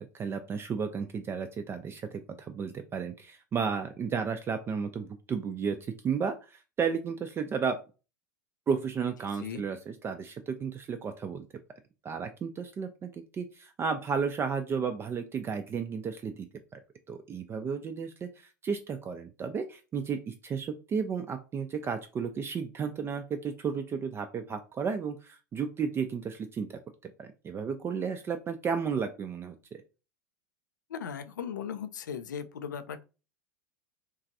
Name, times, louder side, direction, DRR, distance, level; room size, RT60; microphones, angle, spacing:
voice 1, 0.1-5.8 6.0-7.8 8.7-11.4 12.0-16.5 16.7-16.8 17.1-26.8 27.2-29.8, right 6 dB, 25° right, 0.4 m, -33 dB
voice 2, 30.9-33.0, left 7 dB, 80° left, 0.4 m, -37 dB
3.0 x 2.4 x 2.6 m
hypercardioid pair, 85°, 10 cm